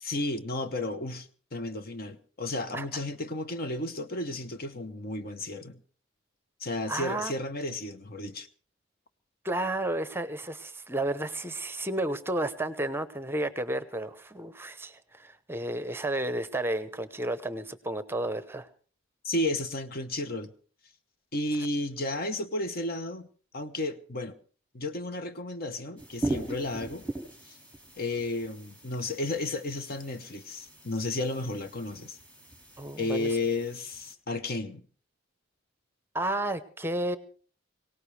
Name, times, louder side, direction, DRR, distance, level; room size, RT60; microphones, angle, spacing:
voice 1, 0.0-5.8 6.6-8.5 19.2-20.5 21.3-23.3 23.5-24.3 24.7-27.0 28.0-32.2 33.0-34.8, left 2 dB, 50° left, 1.0 m, -33 dB
voice 2, 6.9-7.3 9.4-18.7 32.8-33.4 36.1-37.2, right 1 dB, 10° right, 0.8 m, -32 dB
sound 1, 26.0-34.1, right 2 dB, 5° left, 3.5 m, -40 dB
23.0 x 18.0 x 3.3 m
head